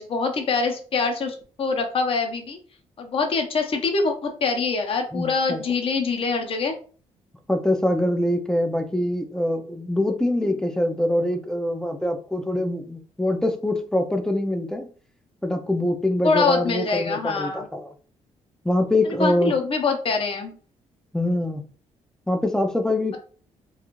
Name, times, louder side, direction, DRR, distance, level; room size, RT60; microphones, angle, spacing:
voice 1, 0.0-2.6 3.0-6.7 16.2-17.7 19.2-20.6, left 4 dB, 45° left, 4 dB, 0.7 m, -24 dB
voice 2, 5.1-5.6 7.5-14.9 15.4-17.9 18.6-19.5 21.1-21.6 22.3-23.2, left 1 dB, 5° left, 6 dB, 0.3 m, -24 dB
2.4 x 2.4 x 3.0 m, 0.42 s
cardioid pair, 115°, 12 cm